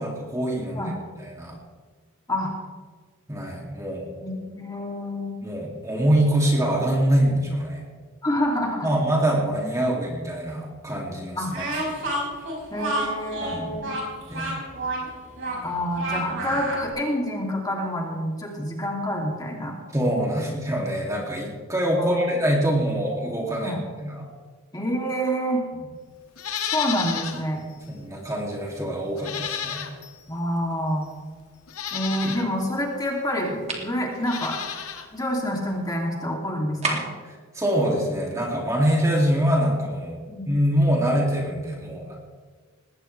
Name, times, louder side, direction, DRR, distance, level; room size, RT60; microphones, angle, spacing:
voice 1, 0.0-0.9 1.2-1.6 3.3-4.1 5.4-7.8 8.8-12.1 13.4-13.7 14.3-14.5 19.9-24.3 25.7-25.9 27.9-29.9 37.3-40.2 40.5-42.2, equal, 15° right, -1 dB, 2.6 m, -24 dB
voice 2, 4.2-5.3 8.2-8.9 11.4-11.5 12.7-13.9 15.6-19.7 22.0-22.2 23.6-23.8 24.7-25.6 26.7-27.6 30.3-31.1 31.9-34.6 35.1-37.0 40.3-40.5, equal, 15° left, -1 dB, 2.7 m, -27 dB
Speech, 11.5-16.9, right 1 dB, 60° right, 5.3 m, -29 dB
Livestock farm animals working animals, 26.4-27.4 27.8-27.9 29.2-30.2 31.0-31.1 31.7-32.5 34.1-35.1 35.3-35.4, left 8 dB, 85° left, 1.6 m, -32 dB
sound 1, 33.7-33.9 36.8-37.3, right 3 dB, 30° right, 2.5 m, -28 dB
20.0 x 17.5 x 3.4 m, 1.5 s
head